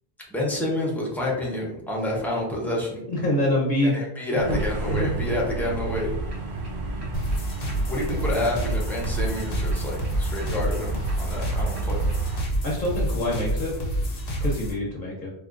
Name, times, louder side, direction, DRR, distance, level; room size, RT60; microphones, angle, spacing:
voice 1, 0.3-3.0 3.9-6.1 7.9-12.1, left 1 dB, ahead, -4 dB, 0.5 m, -28 dB
voice 2, 3.1-4.0 4.3-4.6 4.8-5.1 12.6-13.7 14.4-15.3, left 1 dB, 55° left, -4 dB, 0.8 m, -25 dB
sound 1, 4.4-12.4, right 4 dB, 65° right, 1.0 m, -32 dB
sound 2, 5.0-14.7, equal, 40° right, 1.2 m, -34 dB
sound 3, 7.1-14.7, right 1 dB, 80° left, 0.9 m, -29 dB
3.7 x 2.3 x 2.4 m, 0.79 s
omnidirectional pair, 1.0 m